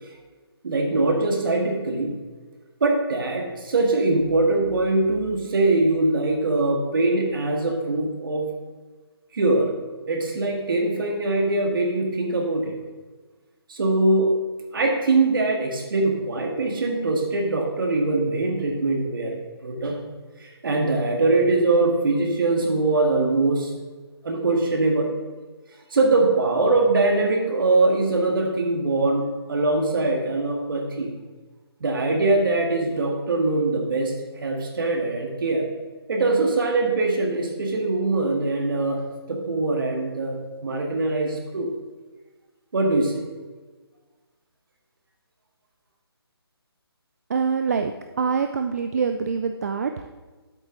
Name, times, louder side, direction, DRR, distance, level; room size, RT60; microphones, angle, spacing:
voice 1, 0.6-2.1 2.8-8.5 9.3-9.7 10.1-12.8 13.7-14.3 14.7-20.0 20.4-23.7 24.2-25.1 25.9-31.1 31.8-35.7 36.1-39.0 39.3-41.7 42.7-43.2, right 2 dB, 55° right, 1 dB, 2.1 m, -22 dB
voice 2, 47.3-50.1, right 5 dB, 40° right, 7 dB, 0.4 m, -25 dB
9.9 x 8.3 x 4.0 m, 1.3 s
figure-of-eight pair, 155°, 14 cm